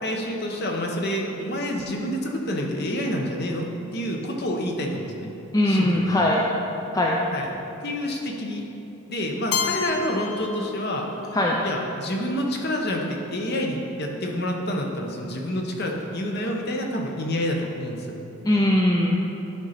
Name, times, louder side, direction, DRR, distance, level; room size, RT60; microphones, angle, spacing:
voice 1, 0.0-5.3 5.6-6.1 7.3-7.5 7.8-8.7 9.1-11.2 11.6-18.2, equal, 45° left, 1 dB, 0.9 m, -28 dB
voice 2, 5.5-6.4 6.9-7.2 11.3-11.6 18.4-19.2, left 1 dB, 15° left, -2 dB, 0.4 m, -20 dB
Keyboard (musical), 9.5-11.4, left 6 dB, 80° left, 0.6 m, -30 dB
11.0 x 3.9 x 5.7 m, 3.0 s
head